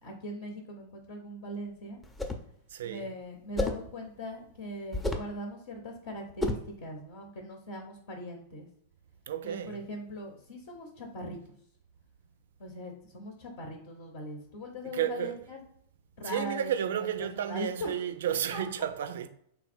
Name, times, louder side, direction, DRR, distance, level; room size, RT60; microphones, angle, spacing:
voice 1, 0.0-2.0 2.8-8.7 9.4-11.4 12.6-15.6 16.2-17.9 18.5-18.6, equal, 60° left, 0.8 m, -40 dB
sound 1, 2.0-2.5 3.6-3.9 4.9-5.4 6.4-6.7, left 1 dB, 10° left, 0.5 m, -31 dB
voice 2, 2.7-3.1 9.3-9.8 14.8-15.3 16.2-19.3, right 9 dB, 65° right, 0.3 m, -32 dB
3.4 x 2.2 x 4.3 m
figure-of-eight pair, 95°, 0 cm